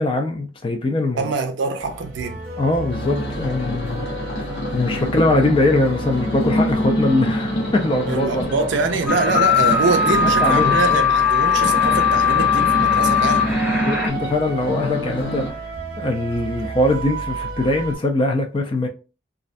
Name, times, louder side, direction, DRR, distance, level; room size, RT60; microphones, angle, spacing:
voice 1, 0.0-1.3 2.6-4.1 4.7-8.5 10.0-10.1 10.4-11.1 13.8-15.6 16.0-18.9, left 2 dB, 30° left, 0.4 m, -22 dB
voice 2, 1.2-2.4 8.1-13.5, right 4 dB, 80° right, 0.4 m, -24 dB
sound 1, 1.8-18.0, right 2 dB, 55° right, 0.8 m, -32 dB
sound 2, 2.9-15.5, equal, 65° left, 0.9 m, -26 dB
sound 3, 9.1-14.1, left 7 dB, ahead, 0.7 m, -19 dB
2.4 x 2.1 x 2.5 m
head